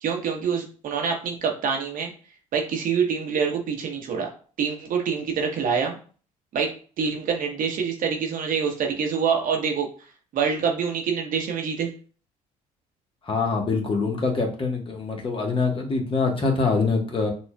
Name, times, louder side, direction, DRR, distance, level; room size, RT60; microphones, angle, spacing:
voice 1, 0.0-2.1 2.5-4.3 4.6-6.0 6.5-6.7 7.0-9.9 10.3-11.9, right 6 dB, 55° right, 2 dB, 0.9 m, -26 dB
voice 2, 13.2-17.3, left 4 dB, 35° left, 0 dB, 1.2 m, -24 dB
5.6 x 2.4 x 2.2 m, 0.41 s
hypercardioid pair, 60°, 16 cm